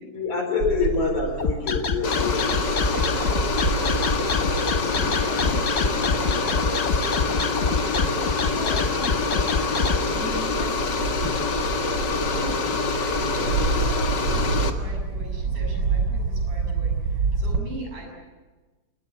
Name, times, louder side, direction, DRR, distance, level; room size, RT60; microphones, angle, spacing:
voice 1, 0.1-3.4, left 4 dB, 75° left, 5 dB, 5.9 m, -27 dB
Bird / Wind, 0.6-17.6, right 4 dB, 40° right, 2.9 m, -30 dB
sound 1, 1.4-10.0, left 4 dB, 60° left, 0.6 m, -25 dB
sound 2, 2.0-14.7, left 4 dB, 40° left, 1.9 m, -26 dB
voice 2, 4.9-8.0 8.5-11.7 12.3-18.1, right 1 dB, 90° right, 1 dB, 8.7 m, -41 dB
29.0 x 19.5 x 8.4 m, 1.3 s
omnidirectional pair, 3.4 m